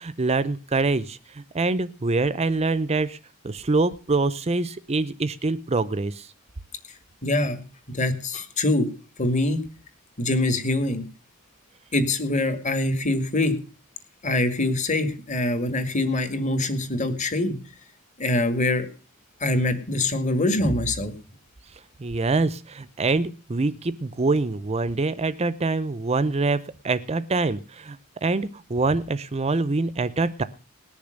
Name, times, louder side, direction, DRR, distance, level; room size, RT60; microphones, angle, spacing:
voice 1, 0.0-3.2 3.4-6.3 21.7-30.4, right 3 dB, 30° right, 15 dB, 0.6 m, -25 dB
voice 2, 7.2-7.6 7.9-8.9 9.2-9.6 10.2-11.0 11.9-13.6 14.2-17.6 18.2-18.9 19.4-21.1, left 2 dB, 35° left, 9 dB, 2.0 m, -24 dB
19.0 x 6.9 x 6.5 m, 0.36 s
head